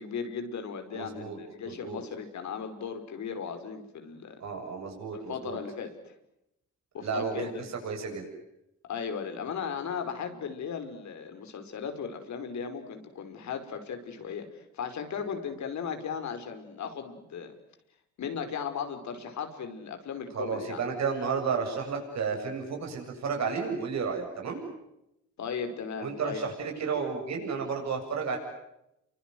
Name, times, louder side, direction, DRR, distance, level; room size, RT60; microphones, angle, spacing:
voice 1, 0.0-4.4 5.3-6.1 6.9-7.7 8.9-17.5 18.2-20.8 25.4-26.5, left 6 dB, 65° left, 7 dB, 5.3 m, -36 dB
voice 2, 0.9-1.4 1.6-2.0 4.4-5.6 7.0-8.3 20.3-24.7 26.0-28.4, right 5 dB, 60° right, 3 dB, 7.7 m, -32 dB
29.5 x 24.5 x 7.9 m, 0.84 s
cardioid pair, 90°, 30 cm